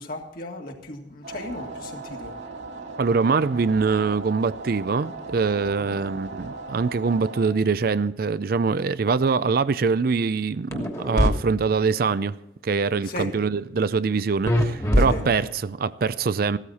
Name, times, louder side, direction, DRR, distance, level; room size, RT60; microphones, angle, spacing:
voice 1, 0.0-2.4 5.8-6.0 13.0-13.3 15.0-15.2, left 1 dB, 55° left, 2.0 m, -36 dB
sound 1, 1.2-7.5, right 3 dB, 80° right, 2.2 m, -38 dB
voice 2, 3.0-12.3 12.6-16.6, right 4 dB, 55° right, 0.4 m, -23 dB
sound 2, 10.7-11.3 14.5-15.6, equal, 20° left, 1.4 m, -22 dB
15.0 x 13.0 x 4.2 m
head